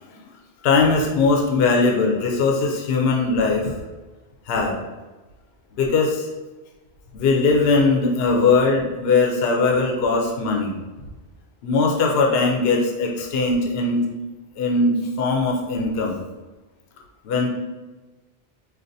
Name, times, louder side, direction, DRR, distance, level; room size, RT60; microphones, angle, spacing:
voice 1, 0.6-3.7 4.5-4.8 5.8-6.3 7.1-10.8 11.6-14.1 14.6-16.2 17.2-17.5, left 3 dB, 70° left, 0 dB, 0.8 m, -20 dB
4.6 x 2.5 x 2.6 m, 1.2 s
omnidirectional pair, 1.1 m